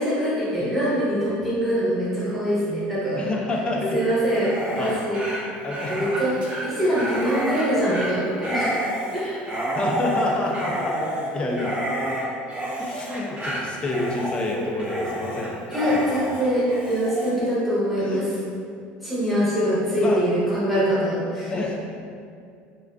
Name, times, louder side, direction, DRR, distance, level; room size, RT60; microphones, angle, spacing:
voice 1, 0.0-3.2 3.9-5.2 5.9-8.8 9.1-9.4 15.7-18.4 19.0-21.5, equal, ahead, -10 dB, 0.8 m, -23 dB
voice 2, 0.5-0.8 3.2-4.0 4.8-4.9 5.6-6.0 6.9-7.0 9.7-11.0 11.3-11.8 12.8-15.6 15.9-16.3 18.0-18.2 20.0-20.2 21.5-21.8, left 2 dB, 25° left, -1 dB, 0.3 m, -28 dB
Dog, 4.3-17.3, right 1 dB, 30° right, 0.5 m, -30 dB
2.4 x 2.2 x 2.4 m, 2.3 s
cardioid pair, 130°, 4 cm